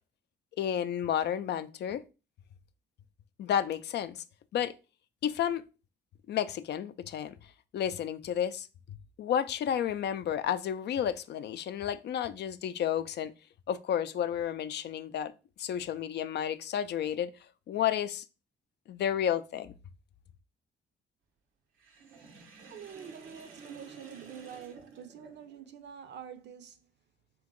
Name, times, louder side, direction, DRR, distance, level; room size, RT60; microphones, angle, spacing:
voice 1, 0.6-2.0 3.4-4.2 4.5-4.7 5.2-5.6 6.3-7.3 7.7-8.7 9.2-13.3 13.7-15.3 15.6-17.3 17.7-18.2 18.9-19.7, left 9 dB, 60° left, 0.4 m, -31 dB
Sink (filling or washing), 21.8-25.7, right 5 dB, 85° right, 0.9 m, -51 dB
voice 2, 22.7-26.9, right 8 dB, 60° right, 0.7 m, -47 dB
3.6 x 2.9 x 3.7 m
cardioid pair, 90°, 20 cm